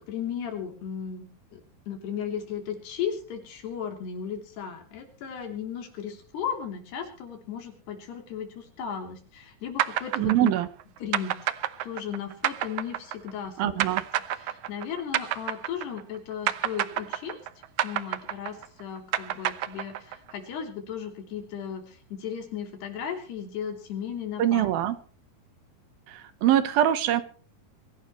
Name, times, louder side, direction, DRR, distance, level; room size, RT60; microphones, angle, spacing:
voice 1, 0.1-1.3 1.5-10.5 11.0-11.5 11.8-13.8 14.3-17.4 17.8-24.8, left 8 dB, 85° left, 4 dB, 5.4 m, -35 dB
sound 1, 9.8-16.2 16.5-20.3, right 13 dB, 85° right, 1.7 m, -29 dB
voice 2, 10.2-10.7 13.6-14.0 24.4-25.0 26.1-27.2, right 12 dB, 70° right, 13 dB, 2.7 m, -23 dB
24.0 x 17.0 x 3.1 m, 0.39 s
omnidirectional pair, 4.6 m